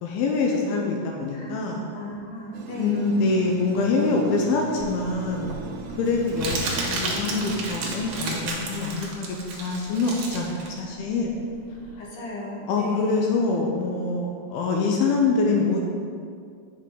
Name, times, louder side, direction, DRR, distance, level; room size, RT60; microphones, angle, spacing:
voice 1, 0.0-1.8 2.8-5.5 6.0-11.3 12.7-15.8, left 3 dB, 85° left, 0 dB, 2.4 m, -25 dB
voice 2, 1.9-3.0 12.0-13.3, left 1 dB, 65° left, -3 dB, 2.5 m, -35 dB
sound 1, 2.5-8.5, right 3 dB, 85° right, 1.9 m, -39 dB
Crumpling crinkling, 4.8-11.9, right 3 dB, 65° right, 1.9 m, -32 dB
9.3 x 5.9 x 3.7 m, 2.3 s
omnidirectional pair, 4.5 m